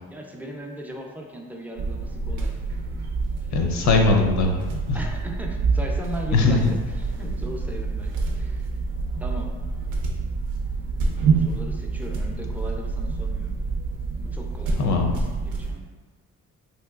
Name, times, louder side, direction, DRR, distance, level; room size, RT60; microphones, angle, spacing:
voice 1, 0.1-2.5 4.9-8.7 9.2-9.5 11.4-13.6 14.2-15.8, right 1 dB, 5° right, 0 dB, 0.4 m, -38 dB
sound 1, 1.8-15.7, right 4 dB, 90° right, 0.5 m, -27 dB
voice 2, 3.5-4.6 4.9-5.0 6.3-6.8 14.8-15.2, left 3 dB, 70° left, 2 dB, 0.6 m, -20 dB
3.1 x 2.9 x 2.3 m, 1.4 s
cardioid pair, 90°, 30 cm